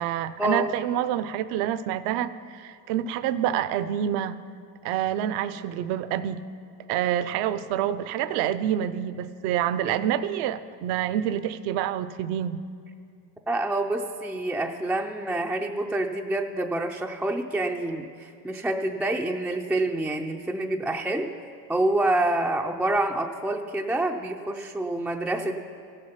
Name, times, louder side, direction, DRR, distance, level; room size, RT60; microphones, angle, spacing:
voice 1, 0.0-4.3 4.8-6.4 6.9-12.6, right 10 dB, 60° right, 14 dB, 0.7 m, -27 dB
voice 2, 13.5-21.3 21.7-25.5, right 1 dB, 5° right, 2 dB, 0.4 m, -27 dB
16.0 x 6.7 x 5.7 m, 2.4 s
hypercardioid pair, 85°, 49 cm